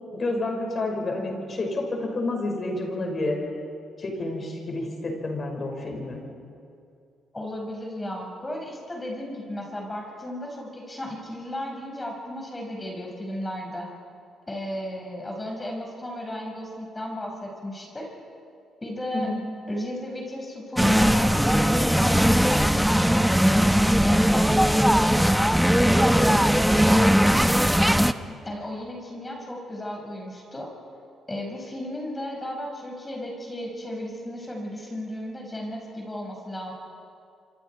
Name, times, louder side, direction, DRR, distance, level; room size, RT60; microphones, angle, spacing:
voice 1, 0.1-3.4 4.0-6.2 19.1-19.4, left 2 dB, 40° left, 1 dB, 5.4 m, -29 dB
voice 2, 7.3-13.9 14.5-18.1 18.8-19.3 19.7-23.6 24.0-25.3 25.8-27.4 28.3-30.7 31.3-36.7, left 1 dB, 20° left, 0 dB, 5.7 m, -34 dB
sound 1, 20.8-28.1, equal, ahead, 0.8 m, -19 dB
27.5 x 25.5 x 4.7 m, 2.4 s
cardioid pair, 90°, 0 cm